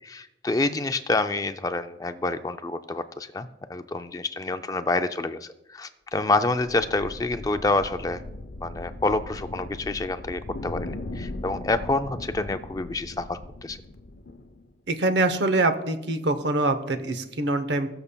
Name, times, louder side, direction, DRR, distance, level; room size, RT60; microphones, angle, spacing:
voice 1, 0.0-8.2 8.6-13.8, left 2 dB, 20° left, 9 dB, 0.3 m, -27 dB
sound 1, 6.6-14.7, left 2 dB, 55° left, 0.7 m, -39 dB
voice 2, 14.9-17.9, right 2 dB, 65° right, 10 dB, 0.8 m, -24 dB
20.5 x 6.9 x 2.2 m, 0.90 s
head